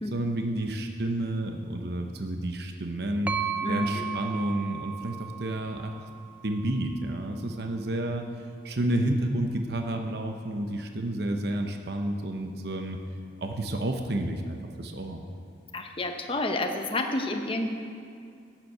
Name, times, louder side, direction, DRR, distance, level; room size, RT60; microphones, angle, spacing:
voice 1, 0.1-3.3 3.7-6.0 6.4-8.3 8.6-13.0 13.4-15.2, right 1 dB, 55° right, 4 dB, 0.8 m, -30 dB
sound 1, 3.3-7.0, right 7 dB, 10° right, 0.3 m, -35 dB
voice 2, 3.6-4.1 15.7-17.7, left 2 dB, 30° left, 4 dB, 0.9 m, -30 dB
12.0 x 7.5 x 8.0 m, 2.3 s
head